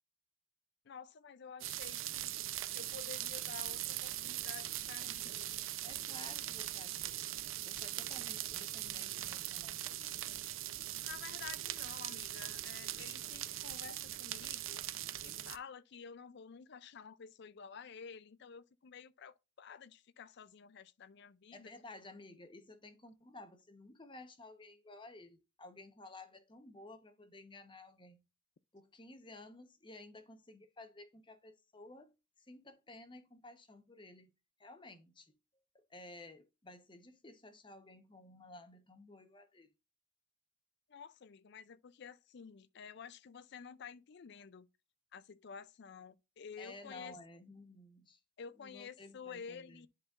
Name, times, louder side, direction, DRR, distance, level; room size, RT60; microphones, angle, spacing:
voice 1, 0.9-2.3 2.7-5.7 11.0-14.8 15.2-21.7 40.9-44.7 45.1-47.2 48.4-49.9, left 6 dB, 55° left, 0.4 m, -51 dB
sound 1, 1.6-15.6, right 14 dB, 75° right, 0.6 m, -41 dB
voice 2, 5.8-7.3 7.7-10.1 21.5-28.2 28.7-34.3 34.6-35.4 35.7-39.7 46.6-48.2 48.6-49.8, left 2 dB, 25° left, 1.0 m, -54 dB
10.5 x 4.2 x 2.5 m
head